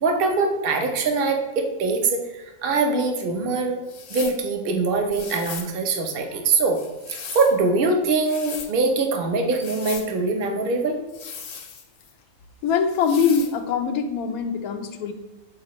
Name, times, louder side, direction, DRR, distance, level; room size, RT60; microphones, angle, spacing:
voice 1, 0.0-3.8 4.1-6.8 7.1-11.0, right 3 dB, 45° right, 3 dB, 0.9 m, -23 dB
sound 1, 3.9-4.4 5.1-5.7 6.7-7.6 8.1-8.7 9.5-10.1 11.1-12.1 12.9-13.5, left 6 dB, 55° left, 0.9 m, -37 dB
voice 2, 12.6-15.1, left 6 dB, 85° left, 5 dB, 1.1 m, -23 dB
7.6 x 4.1 x 3.0 m, 1.2 s
omnidirectional pair, 1.5 m